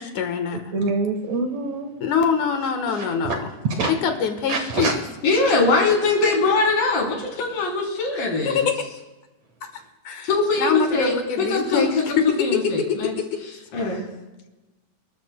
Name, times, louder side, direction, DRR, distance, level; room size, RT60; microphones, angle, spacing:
voice 1, 0.0-0.7 2.0-3.5 3.9-5.0 8.5-8.7 10.0-10.3 10.6-12.3 12.5-13.2, left 6 dB, 70° left, 6 dB, 2.5 m, -24 dB
voice 2, 0.7-1.9 2.9-3.4 3.8-3.9 4.5-4.9, right 3 dB, 60° right, 4 dB, 2.3 m, -25 dB
voice 3, 5.2-8.7 10.2-12.0 12.4-13.1 13.7-14.0, left 3 dB, 85° left, -1 dB, 5.2 m, -22 dB
28.0 x 13.0 x 2.2 m, 1.1 s
omnidirectional pair, 3.9 m